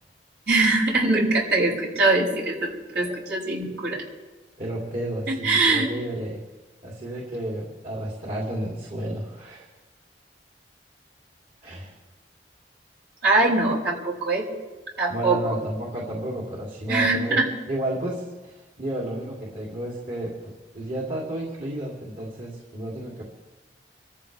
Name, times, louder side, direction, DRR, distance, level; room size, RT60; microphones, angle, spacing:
voice 1, 0.5-4.0 5.3-5.9 13.2-14.5 15.0-15.4 16.9-17.5, right 3 dB, 75° right, -4 dB, 6.4 m, -22 dB
voice 2, 4.6-6.4 6.8-9.7 11.6-11.9 15.1-17.4 17.7-23.2, right 1 dB, 50° right, -4 dB, 3.2 m, -32 dB
27.5 x 14.5 x 3.5 m, 1.2 s
head